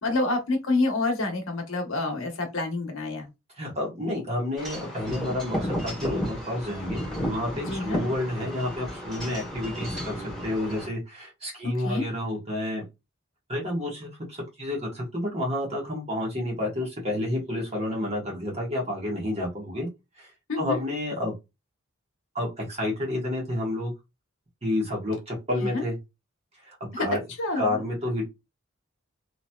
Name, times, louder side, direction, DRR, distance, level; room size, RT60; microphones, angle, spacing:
voice 1, 0.0-3.3 7.7-8.0 11.6-12.0 20.5-20.8 25.6-25.8 26.9-27.1 27.4-27.8, left 3 dB, 75° left, 0.9 m, -28 dB
voice 2, 3.6-12.8 13.5-19.9 20.2-20.3 20.6-21.3 22.3-23.9 24.6-26.0 26.7-27.2 27.6-28.3, left 1 dB, 30° right, 1.1 m, -30 dB
Wind chime / Wind, 4.6-10.9, equal, ahead, 1.2 m, -33 dB
2.9 x 2.8 x 2.2 m
head